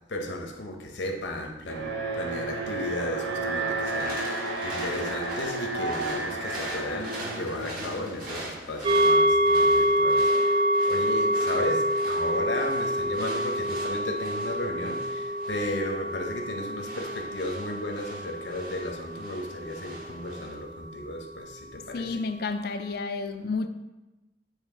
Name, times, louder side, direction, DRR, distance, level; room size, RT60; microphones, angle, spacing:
voice 1, 0.1-22.2, left 1 dB, 80° left, 0.8 m, -35 dB
Alarm, 1.7-8.8, right 3 dB, 80° right, 0.7 m, -32 dB
sound 1, 3.8-20.5, right 1 dB, 50° right, 1.3 m, -42 dB
sound 2, 8.8-20.5 20.9-21.0, equal, 30° right, 0.3 m, -26 dB
voice 2, 21.8-23.7, left 4 dB, 55° left, 0.4 m, -31 dB
8.4 x 3.1 x 3.7 m
head